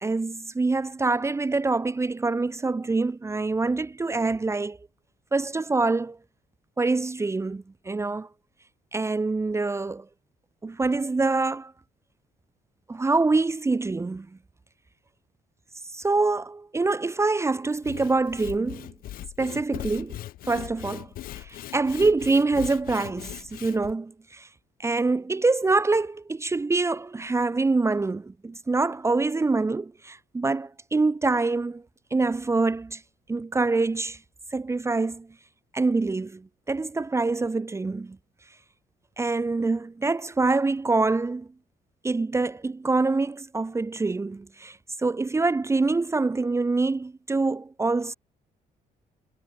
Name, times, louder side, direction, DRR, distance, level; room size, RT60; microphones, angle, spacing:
voice 1, 0.0-4.8 5.3-6.2 6.8-8.3 8.9-10.0 10.6-11.7 12.9-14.3 15.9-18.9 19.4-20.2 20.5-21.1 21.4-24.5 24.8-31.8 32.1-33.0 33.3-34.2 34.5-35.3 35.7-36.4 36.7-38.2 39.2-41.5 42.0-48.1, right 3 dB, 20° right, 1.0 m, -25 dB
Sawing / Wood, 17.7-23.9, left 14 dB, 80° left, 2.0 m, -40 dB
cardioid pair, 105°, 15 cm